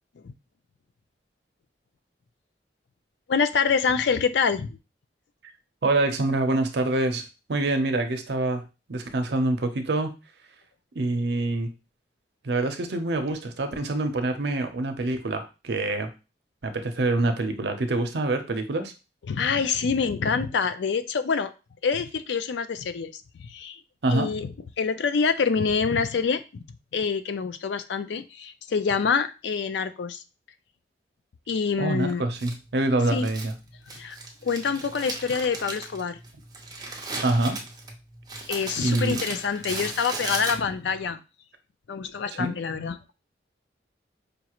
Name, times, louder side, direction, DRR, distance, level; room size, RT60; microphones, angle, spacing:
voice 1, 3.3-4.8 19.3-21.5 21.8-23.8 24.1-24.5 24.8-30.2 31.5-32.2 33.1-33.3 33.9-34.2 34.4-36.2 38.5-41.2 41.9-43.0, left 5 dB, 75° left, 0.4 m, -26 dB
voice 2, 5.8-10.1 10.9-11.7 12.4-16.1 16.6-18.9 24.0-24.3 31.8-33.5 37.2-37.6 38.8-39.2 42.4-42.5, right 2 dB, 65° right, 0.6 m, -26 dB
Crumpling crinkling, 32.4-41.0, right 3 dB, 20° right, 0.6 m, -37 dB
5.1 x 2.4 x 2.9 m
head